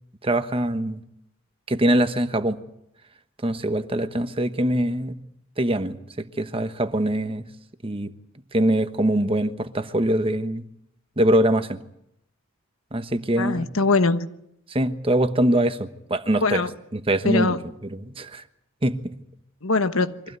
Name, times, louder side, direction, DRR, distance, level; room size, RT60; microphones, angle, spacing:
voice 1, 0.2-1.0 1.7-2.6 3.4-5.2 5.6-7.5 7.8-8.1 8.5-10.6 11.2-11.8 12.9-13.7 14.7-16.6 16.9-17.5 17.9-18.4 18.8-19.2, right 1 dB, 25° right, 1.2 m, -23 dB
voice 2, 13.4-14.3 16.4-16.7 17.2-17.6 19.6-20.1, left 3 dB, 85° left, 1.2 m, -22 dB
24.0 x 16.0 x 9.6 m
head